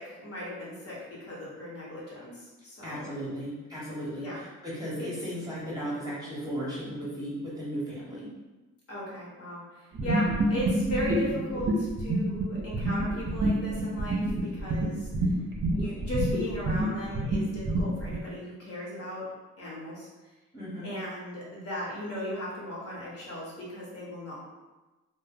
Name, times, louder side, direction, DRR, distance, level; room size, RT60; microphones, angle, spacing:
voice 1, 0.0-3.1 4.2-4.4 5.0-5.1 8.9-15.3 15.7-19.3 19.6-20.1 20.8-24.3, left 1 dB, 50° left, -5 dB, 1.1 m, -37 dB
voice 2, 2.8-8.3 10.0-10.4 20.5-20.9, equal, 10° right, -8 dB, 0.8 m, -36 dB
sound 1, 9.9-18.2, right 1 dB, 40° right, 0.6 m, -28 dB
2.1 x 2.1 x 3.4 m, 1.2 s
cardioid pair, 90°, 30 cm